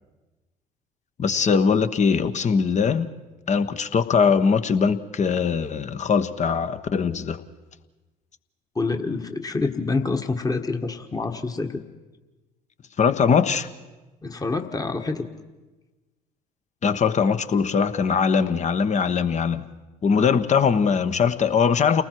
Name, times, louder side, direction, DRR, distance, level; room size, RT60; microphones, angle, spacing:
voice 1, 1.2-3.1 3.5-7.4 13.0-13.7 16.8-19.6 20.0-22.0, left 6 dB, 35° left, 1.2 m, -21 dB
voice 2, 8.7-11.8 14.2-15.3, left 3 dB, 20° left, 1.6 m, -27 dB
29.5 x 19.5 x 4.7 m
hypercardioid pair, 60°, 20 cm